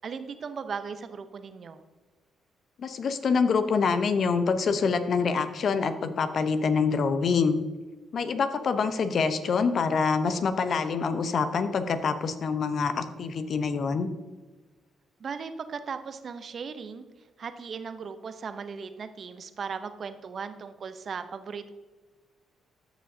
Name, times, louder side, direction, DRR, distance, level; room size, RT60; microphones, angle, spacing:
voice 1, 0.0-1.8 15.2-17.1 17.4-21.7, right 5 dB, 55° right, 10 dB, 0.8 m, -37 dB
voice 2, 2.8-7.6 8.1-14.1, left 5 dB, 60° left, 10 dB, 0.8 m, -26 dB
13.5 x 6.1 x 2.8 m, 1.3 s
hypercardioid pair, 50°, 0 cm